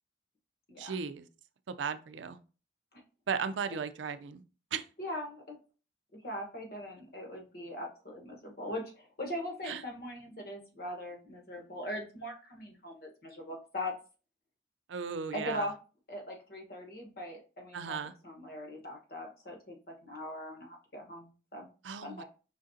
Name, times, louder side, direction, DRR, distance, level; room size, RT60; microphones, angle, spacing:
voice 1, 0.8-1.2 1.7-2.4 3.3-4.4 4.7-4.8 9.6-9.8 14.9-15.7 17.7-18.1 21.8-22.2, right 6 dB, 85° right, 11 dB, 0.4 m, -36 dB
voice 2, 5.0-5.6 6.1-13.9 15.3-15.8 16.1-18.0 18.2-19.8 20.0-21.7 22.0-22.2, left 1 dB, 50° left, 2 dB, 1.2 m, -40 dB
5.1 x 3.7 x 2.7 m, 0.35 s
head